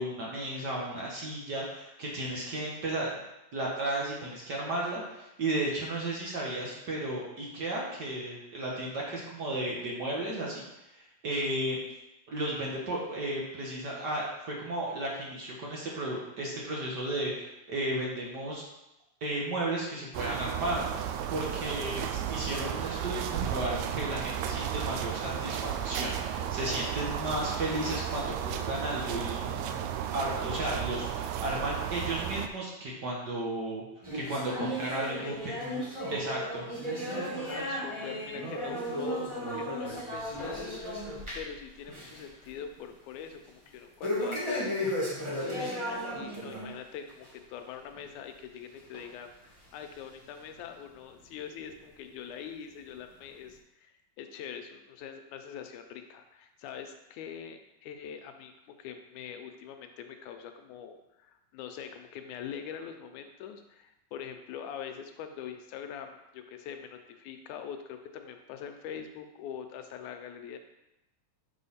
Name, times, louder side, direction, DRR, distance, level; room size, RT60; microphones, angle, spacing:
voice 1, 0.0-3.1 3.5-10.6 10.9-11.8 12.3-18.6 19.2-29.8 30.1-33.8 34.1-35.3 36.1-36.7, right 1 dB, 55° right, -3 dB, 1.2 m, -34 dB
sound 1, 20.1-32.5, right 9 dB, 80° right, 1.8 m, -34 dB
sound 2, 34.0-41.6 41.9-42.2 42.6-42.7 44.0-46.7 47.1-47.3 48.0-48.1 48.9-49.0 49.8-49.9, equal, 20° right, 0.7 m, -34 dB
voice 2, 35.0-35.9 37.4-40.8 41.3-44.9 45.3-70.6, left 8 dB, 85° left, 6 dB, 2.1 m, -43 dB
6.2 x 4.2 x 5.6 m, 0.91 s
omnidirectional pair, 3.4 m